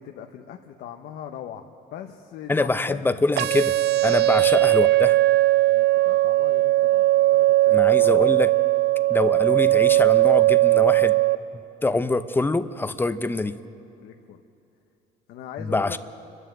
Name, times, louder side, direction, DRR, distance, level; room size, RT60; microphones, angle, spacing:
voice 1, 0.0-3.0 4.3-4.4 5.7-8.3 14.0-14.4 15.3-16.0, left 9 dB, 75° left, 4 dB, 1.0 m, -40 dB
voice 2, 2.5-3.8 4.0-5.2 7.7-8.5 9.1-11.2 11.8-13.6 15.6-16.0, left 2 dB, 10° left, 11 dB, 0.7 m, -24 dB
sound 1, 3.4-11.4, right 17 dB, 80° right, 0.5 m, -19 dB
29.0 x 11.0 x 7.9 m, 2.7 s
cardioid pair, 110°, 17 cm